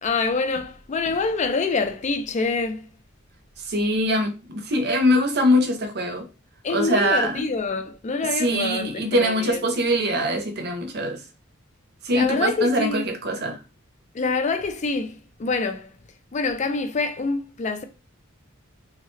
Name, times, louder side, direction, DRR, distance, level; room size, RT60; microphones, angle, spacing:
voice 1, 0.0-2.9 6.6-9.7 12.1-13.0 14.1-15.9 16.3-17.8, left 4 dB, 35° left, 0.4 m, -26 dB
voice 2, 3.7-6.3 6.7-7.5 8.4-11.2 12.0-13.6, equal, 50° right, 0.7 m, -23 dB
3.5 x 2.1 x 3.1 m
head